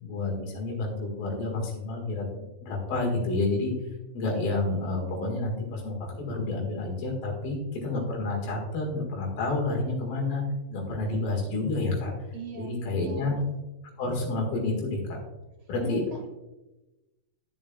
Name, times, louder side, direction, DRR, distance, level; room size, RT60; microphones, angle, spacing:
voice 1, 0.0-2.3 2.6-3.7 4.1-10.4 10.7-12.1 12.6-13.4 14.0-15.2 15.7-16.0, left 2 dB, 85° left, -1 dB, 3.6 m, -29 dB
voice 2, 12.3-12.7 13.0-13.4 15.8-16.3, right 4 dB, 70° right, 2 dB, 2.0 m, -40 dB
13.5 x 7.3 x 2.3 m, 1.0 s
omnidirectional pair, 4.1 m